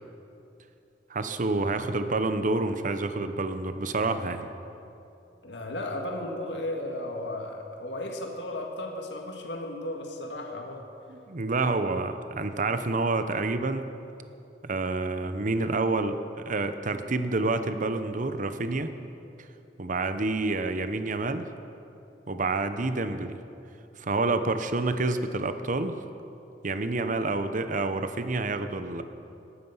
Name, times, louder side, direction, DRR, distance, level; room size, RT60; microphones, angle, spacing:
voice 1, 1.1-4.5 11.1-13.9 14.6-16.2 16.5-18.9 19.8-21.5 22.3-23.4 24.0-26.0 26.6-29.0, right 3 dB, 45° right, 10 dB, 0.8 m, -28 dB
voice 2, 5.4-10.8, left 1 dB, 75° left, 2 dB, 1.8 m, -35 dB
18.0 x 13.0 x 5.6 m, 2.8 s
head